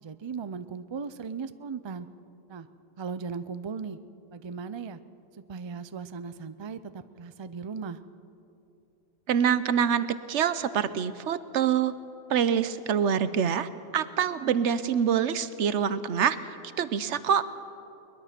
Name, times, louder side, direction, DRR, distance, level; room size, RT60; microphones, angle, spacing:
voice 1, 0.0-2.1 2.5-2.7 3.0-4.0 4.3-5.0 5.3-8.0, right 5 dB, 35° right, 12 dB, 0.4 m, -37 dB
voice 2, 9.3-11.9 12.3-16.4 16.8-17.4, right 8 dB, 80° right, 14 dB, 1.1 m, -25 dB
22.0 x 21.0 x 5.9 m, 2.8 s
omnidirectional pair, 1.2 m